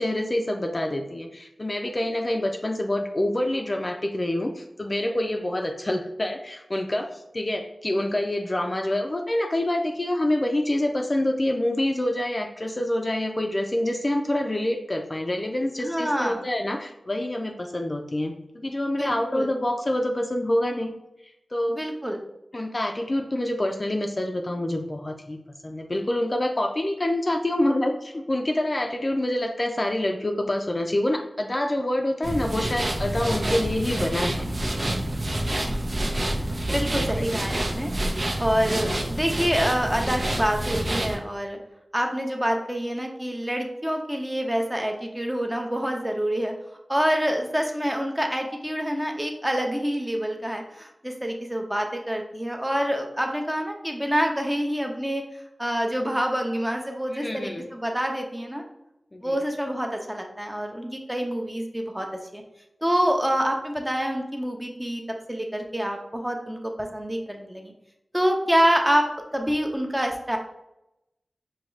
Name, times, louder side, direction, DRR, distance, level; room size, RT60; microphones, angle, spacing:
voice 1, 0.0-20.9 21.5-21.8 22.5-34.4 36.7-37.2 57.1-57.7 59.1-59.4, left 1 dB, 40° left, 3 dB, 0.4 m, -26 dB
voice 2, 15.8-16.4 19.0-19.5 21.7-22.2 36.6-37.9 38.4-41.6 41.9-46.5 46.9-55.2 55.6-58.6 59.2-62.1 62.3-62.4 62.8-65.0 65.3-67.7 68.1-69.1 69.3-70.4, equal, 10° right, 2 dB, 0.7 m, -26 dB
sound 1, 32.2-41.2, right 1 dB, 55° right, 0.6 m, -28 dB
4.8 x 2.3 x 3.1 m, 0.87 s
wide cardioid pair, 50°, 0 cm